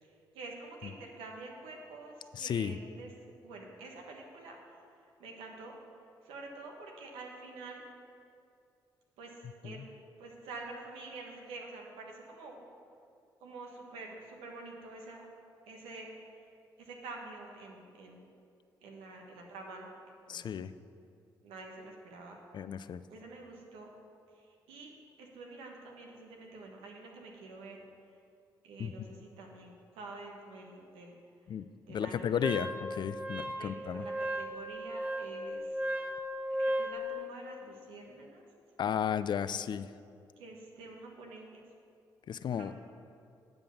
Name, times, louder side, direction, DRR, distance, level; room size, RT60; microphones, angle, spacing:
voice 1, 0.0-3.1 3.4-4.8 5.2-5.7 6.2-7.8 9.2-12.6 13.4-15.3 15.7-16.4 16.8-18.2 18.8-19.9 20.3-20.5 21.4-22.4 23.1-23.9 24.3-24.9 25.2-27.8 28.6-31.1 31.9-32.4 33.5-36.3 36.6-38.4 40.4-41.6 42.5-42.7, right 3 dB, 80° right, 1 dB, 1.3 m, -48 dB
voice 2, 2.3-2.8 9.6-9.9 20.3-20.7 22.5-23.0 28.8-29.1 31.5-34.1 38.8-39.9 42.3-42.7, left 8 dB, 55° left, 14 dB, 0.4 m, -34 dB
Wind instrument woodwind instrument, 32.4-37.0, right 1 dB, 20° right, 1.4 m, -36 dB
9.3 x 5.3 x 7.0 m, 2.4 s
hypercardioid pair, 50°, 9 cm